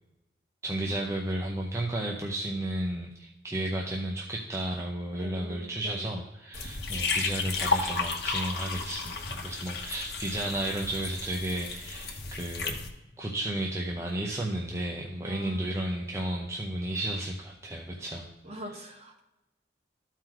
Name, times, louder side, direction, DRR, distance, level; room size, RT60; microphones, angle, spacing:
voice 1, 0.6-12.8 13.2-18.3, right 1 dB, 15° right, -2 dB, 0.6 m, -33 dB
voice 2, 5.2-6.2 15.2-15.7 18.4-19.2, equal, 35° right, 0 dB, 1.4 m, -43 dB
sound 1, 6.5-12.9, left 4 dB, 60° left, 1.1 m, -33 dB
13.0 x 4.6 x 3.8 m, 0.96 s
head